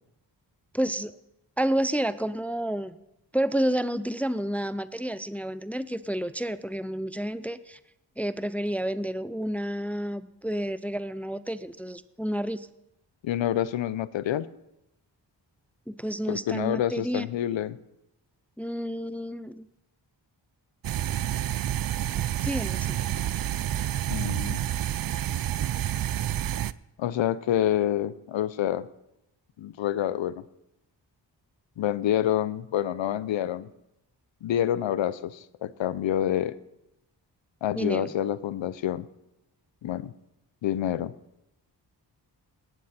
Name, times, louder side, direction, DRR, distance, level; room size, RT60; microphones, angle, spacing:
voice 1, 0.7-1.1 1.6-3.0 3.3-7.8 8.2-12.7 15.9-17.2 18.6-19.7 22.4-23.0 37.8-38.1, right 1 dB, 5° left, 15 dB, 0.5 m, -30 dB
voice 2, 13.2-14.5 16.3-17.8 24.1-24.6 27.0-28.9 29.6-30.4 31.8-33.7 34.4-36.5 37.6-39.1 39.8-40.1 40.6-41.1, left 11 dB, 85° left, 17 dB, 0.7 m, -27 dB
sound 1, 20.8-26.7, right 11 dB, 50° right, 0.5 m, -29 dB
17.5 x 11.0 x 4.3 m, 0.87 s
cardioid pair, 55°, 45 cm